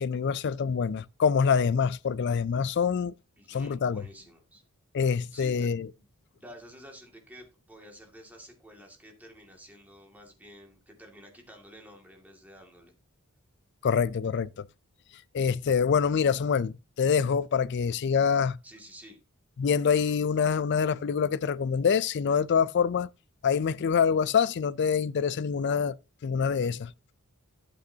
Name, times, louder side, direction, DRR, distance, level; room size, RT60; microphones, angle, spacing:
voice 1, 0.0-3.1 3.5-4.0 4.9-5.9 13.8-14.6 15.3-18.6 19.6-23.1 23.4-26.0 26.2-26.9, left 6 dB, 50° left, 0.4 m, -25 dB
voice 2, 3.4-4.6 5.3-5.7 5.9-6.1 6.3-12.9 18.6-19.2, equal, 5° right, 2.1 m, -50 dB
11.5 x 8.3 x 2.8 m
head